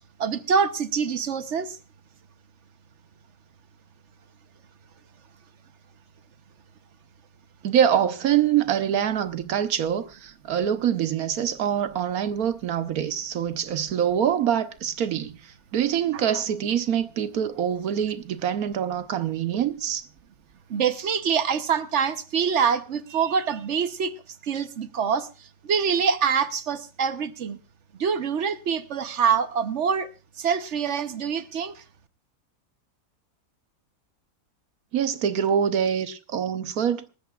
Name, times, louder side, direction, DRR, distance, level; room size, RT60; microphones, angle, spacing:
voice 1, 0.2-1.8 16.1-16.2 20.7-24.1 24.4-27.6 28.0-30.1 30.4-31.8, right 6 dB, 55° right, 1.2 m, -25 dB
voice 2, 7.6-15.4 15.7-20.0 34.9-37.1, right 9 dB, 85° right, 1.4 m, -25 dB
26.5 x 13.0 x 2.4 m
omnidirectional pair, 1.5 m